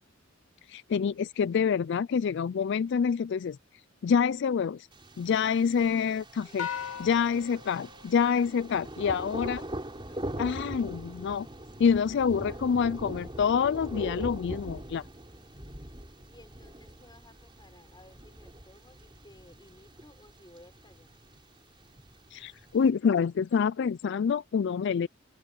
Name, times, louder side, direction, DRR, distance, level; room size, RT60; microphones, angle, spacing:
voice 1, 0.7-3.6 4.0-4.9 5.2-6.7 7.0-9.6 10.4-11.5 11.8-15.0 22.3-25.1, left 6 dB, 60° left, 0.3 m, -27 dB
Thunder, 4.9-22.9, right 1 dB, 25° right, 3.7 m, -42 dB
voice 2, 6.0-7.0 10.1-10.3 16.3-21.2, left 1 dB, 20° left, 4.9 m, -57 dB
sound 1, 6.6-9.1, left 8 dB, 80° left, 3.1 m, -39 dB
open air
head